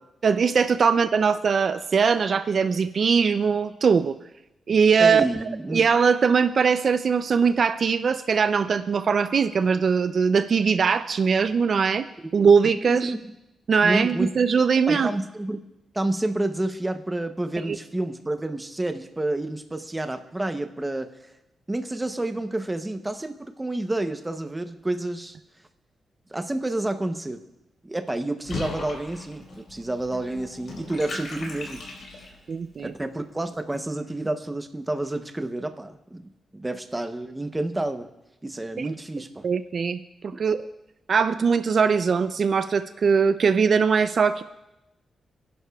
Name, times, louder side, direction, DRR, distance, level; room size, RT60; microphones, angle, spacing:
voice 1, 0.2-4.2 4.7-5.3 5.7-12.1 12.3-13.1 13.7-15.1 17.7-17.8 32.5-32.9 38.8-38.9 39.4-40.7 41.1-44.4, right 6 dB, 50° right, 11 dB, 0.4 m, -21 dB
voice 2, 5.0-5.8 12.9-13.2 13.8-14.3 14.9-15.6 15.9-21.1 21.7-25.3 26.3-27.4 27.8-31.8 32.8-38.1 38.4-39.5 40.3-40.4, right 2 dB, 15° right, 8 dB, 0.7 m, -29 dB
Water / Bathtub (filling or washing), 28.4-32.5, left 3 dB, 65° left, 4.0 m, -37 dB
28.0 x 11.0 x 2.3 m, 0.94 s
wide cardioid pair, 125°, 0 cm